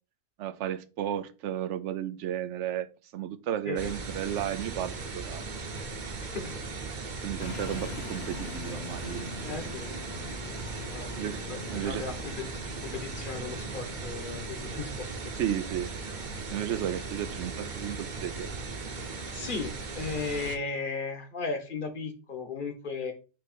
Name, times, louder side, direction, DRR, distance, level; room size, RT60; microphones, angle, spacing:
voice 1, 0.4-5.4 7.2-9.3 11.2-11.4 11.7-12.1 15.4-15.9 16.5-18.5, right 11 dB, 90° right, 12 dB, 0.9 m, -33 dB
sound 1, 3.8-20.6, right 4 dB, 45° right, 1.0 m, -38 dB
voice 2, 6.2-6.7 7.0-7.2 9.4-9.9 10.8-11.1 11.5-15.4 19.3-23.1, left 4 dB, 45° left, 6 dB, 1.3 m, -36 dB
sound 2, 7.4-20.1, left 4 dB, 65° left, 1.2 m, -45 dB
6.0 x 3.2 x 5.1 m, 0.33 s
omnidirectional pair, 1.2 m